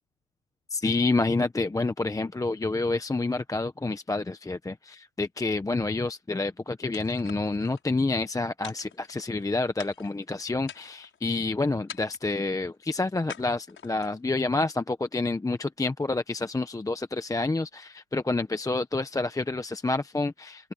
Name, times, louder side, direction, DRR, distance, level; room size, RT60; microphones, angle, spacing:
voice 1, 0.7-20.7, left 3 dB, 10° left, 1.0 m, -28 dB
sound 1, 6.9-7.8 8.6-9.4 9.8-10.2 10.6-11.2 11.9-12.4 13.3-14.2, left 7 dB, 35° left, 6.3 m, -45 dB
open air
supercardioid pair, 110°, 35 cm